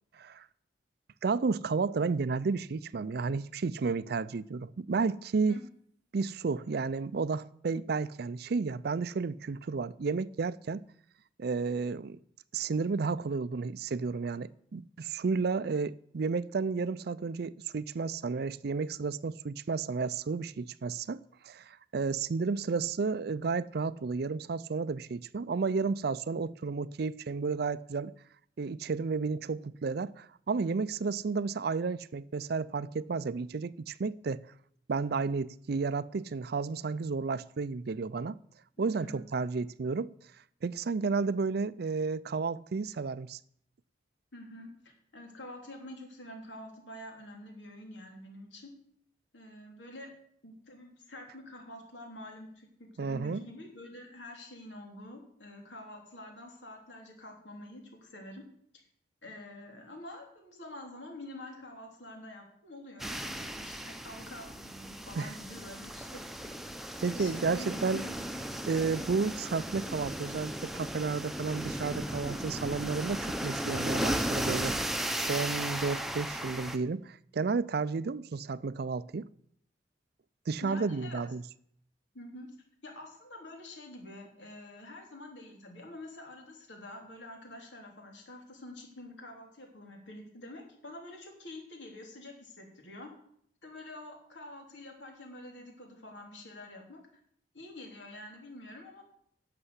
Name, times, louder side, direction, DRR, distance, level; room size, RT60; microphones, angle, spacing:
voice 1, 0.1-0.4 1.2-5.6 6.1-10.8 11.4-12.2 12.5-28.1 28.6-34.4 34.9-38.4 38.8-40.1 40.6-43.4 53.0-53.4 65.1-65.3 67.0-68.0 68.7-79.3 80.5-81.4, right 4 dB, 60° right, 0.4 m, -32 dB
voice 2, 38.8-39.2 44.3-48.7 49.3-50.1 50.4-58.4 59.2-66.3 67.2-68.3 80.6-81.2 82.1-82.5 82.8-93.1 93.6-97.0 97.5-99.0, left 1 dB, 90° left, 3.3 m, -47 dB
sound 1, 63.0-76.8, equal, ahead, 0.7 m, -36 dB
11.5 x 6.8 x 8.1 m
head